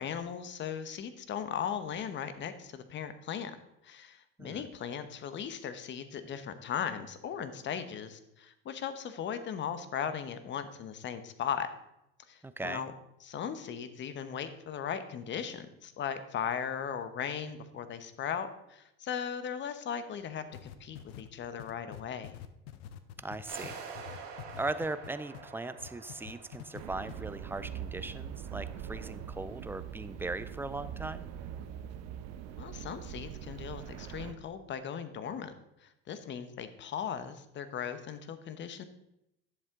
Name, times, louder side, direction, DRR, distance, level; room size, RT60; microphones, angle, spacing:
voice 1, 0.0-3.6 3.8-11.7 12.3-12.9 13.2-22.4 32.6-35.5 35.8-38.8, left 8 dB, 40° left, 11 dB, 1.0 m, -38 dB
voice 2, 12.4-12.8 23.2-23.7 24.6-31.2, right 2 dB, 5° right, 13 dB, 0.4 m, -38 dB
sound 1, 20.5-25.5 25.8-26.8 27.1-27.2, left 12 dB, 85° left, 0.8 m, -46 dB
sound 2, 23.5-28.4, right 5 dB, 75° right, 2.3 m, -47 dB
sound 3, 26.8-34.3, right 9 dB, 55° right, 1.0 m, -42 dB
11.0 x 7.3 x 3.7 m, 0.84 s
supercardioid pair, 105°, 30 cm